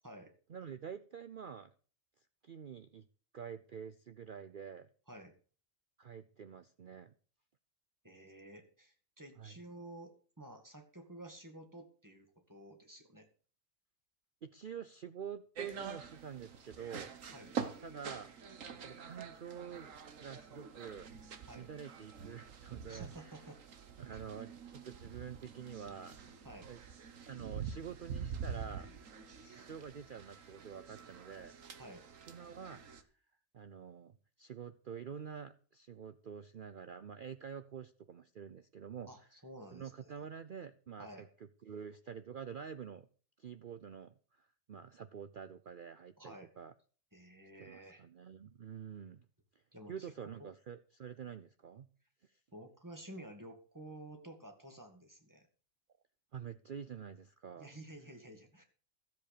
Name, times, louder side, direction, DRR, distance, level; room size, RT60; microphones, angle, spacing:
voice 1, 0.5-1.7 2.4-3.1 3.3-4.9 6.0-7.1 9.4-9.6 14.4-17.1 17.8-18.3 18.8-19.9 20.2-21.1 21.5-23.3 24.0-26.2 26.7-26.8 27.2-28.9 29.4-31.5 32.3-32.8 33.5-39.1 39.7-41.3 41.6-43.1 43.4-46.7 47.6-49.3 49.9-51.9 52.3-52.4 56.3-57.7, right 7 dB, 50° right, 11 dB, 0.7 m, -47 dB
voice 2, 8.0-13.3 17.3-17.6 21.5-21.7 22.9-23.6 24.1-24.2 26.4-26.7 31.8-32.0 39.1-40.2 41.0-41.3 46.2-46.5 47.1-48.0 49.7-50.1 50.4-50.5 52.5-55.5 57.6-58.6, right 1 dB, 15° right, 4 dB, 2.2 m, -52 dB
sound 1, 15.6-33.0, right 6 dB, 70° right, 1.6 m, -46 dB
13.5 x 7.7 x 6.7 m, 0.41 s
omnidirectional pair, 1.4 m